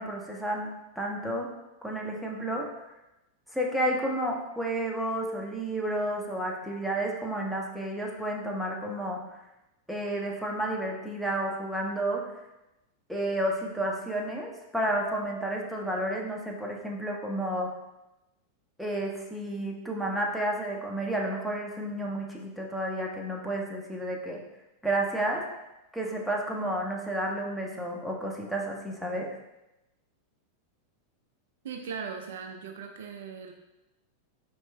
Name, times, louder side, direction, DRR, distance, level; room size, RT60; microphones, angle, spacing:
voice 1, 0.0-1.5 1.8-2.7 3.5-9.2 9.9-12.2 13.1-17.7 18.8-24.4 24.8-25.4 25.9-29.3, right 1 dB, ahead, -1 dB, 0.5 m, -31 dB
voice 2, 31.6-33.5, right 6 dB, 60° right, 4 dB, 0.3 m, -39 dB
4.3 x 2.9 x 2.2 m, 0.96 s
figure-of-eight pair, 90°, 0 cm